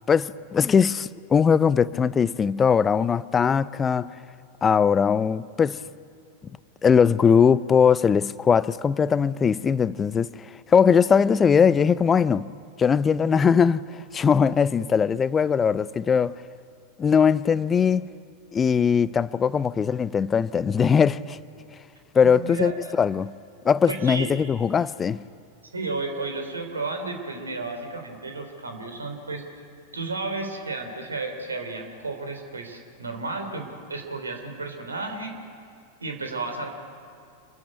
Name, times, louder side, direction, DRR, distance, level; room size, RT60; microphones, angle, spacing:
voice 1, 0.1-4.1 4.6-5.8 6.8-10.3 10.7-12.5 12.8-13.8 14.1-16.3 17.0-18.1 18.5-21.4 22.1-22.7 23.0-23.3 23.6-25.2, left 6 dB, 20° left, 0.5 m, -20 dB
voice 2, 22.2-22.7 23.9-24.3 25.7-29.5 29.9-35.4 36.0-36.7, right 3 dB, 75° right, 3.4 m, -32 dB
26.5 x 15.0 x 9.6 m
figure-of-eight pair, 90°, 0 cm